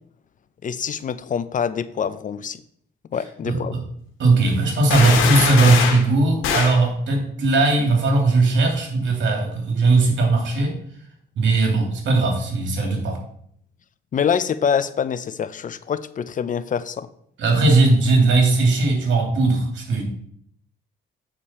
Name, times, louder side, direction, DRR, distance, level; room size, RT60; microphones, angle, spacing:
voice 1, 0.6-2.6 3.1-3.7 14.1-17.1, left 7 dB, 40° left, 15 dB, 0.5 m, -25 dB
voice 2, 3.5-3.8 4.2-10.7 11.4-13.2 17.4-20.1, right 3 dB, 65° right, 1 dB, 2.7 m, -18 dB
sound 1, 4.9-6.1 6.4-6.8, left 6 dB, 90° left, 1.2 m, -22 dB
8.6 x 5.1 x 4.3 m, 0.67 s
cardioid pair, 90°, 20 cm